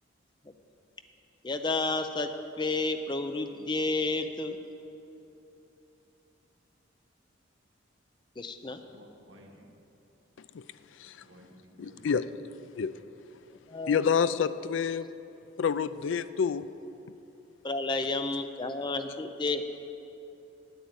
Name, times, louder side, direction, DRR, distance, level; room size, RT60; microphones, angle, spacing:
voice 1, 1.4-2.3 2.6-4.6 8.4-8.8 13.7-14.0 17.6-19.6, left 3 dB, 25° left, 8 dB, 0.5 m, -31 dB
voice 2, 8.7-9.8 11.2-12.1, right 1 dB, 65° right, 1 dB, 1.6 m, -55 dB
voice 3, 11.8-12.3 12.8-12.9 13.9-15.1 15.6-16.7, left 6 dB, 75° left, 15 dB, 0.4 m, -28 dB
9.2 x 9.1 x 8.8 m, 2.9 s
head